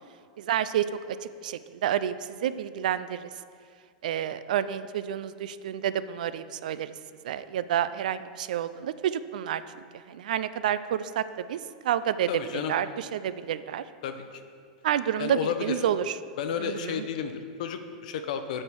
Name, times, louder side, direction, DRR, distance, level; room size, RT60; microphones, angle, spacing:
voice 1, 0.4-1.2 1.4-2.1 2.4-3.3 4.0-6.9 7.2-11.6 11.8-12.3 12.5-13.8 14.8-16.2 16.6-17.1, right 10 dB, 80° right, 14 dB, 0.4 m, -29 dB
voice 2, 12.3-12.7 14.0-14.4 15.2-15.8 16.4-18.6, left 7 dB, 65° left, 8 dB, 0.7 m, -32 dB
8.7 x 4.4 x 6.2 m, 2.2 s
supercardioid pair, 155°, 4 cm